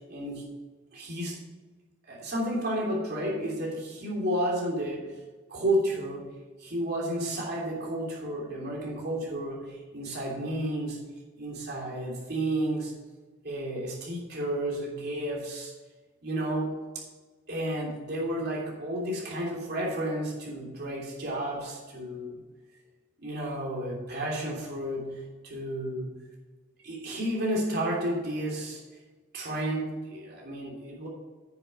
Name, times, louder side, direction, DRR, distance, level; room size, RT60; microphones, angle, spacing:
voice 1, 0.1-0.4 0.9-1.4 2.1-5.2 5.5-6.3 6.6-11.0 11.4-12.9 13.4-15.7 16.2-17.1 17.5-22.4 23.2-26.1 26.8-28.8 29.3-31.1, right 1 dB, 55° right, -3 dB, 3.1 m, -32 dB
9.9 x 6.7 x 4.9 m, 1.3 s
head